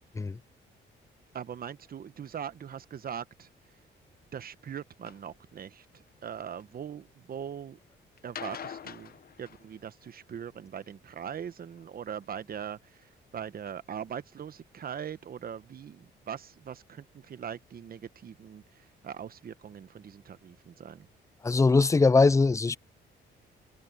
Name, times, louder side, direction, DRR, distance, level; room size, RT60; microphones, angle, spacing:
voice 1, 1.3-3.5 4.3-7.8 8.2-21.1, right 8 dB, 50° right, 1.1 m, -41 dB
sound 1, 5.1-5.2 5.9-6.6 8.2-10.2 11.7-12.3 13.0-13.1 13.7-13.8 14.1-14.2 14.4-14.5, left 8 dB, 50° left, 1.0 m, -44 dB
voice 2, 21.4-22.8, left 3 dB, 15° left, 0.4 m, -21 dB
cardioid pair, 90°, 20 cm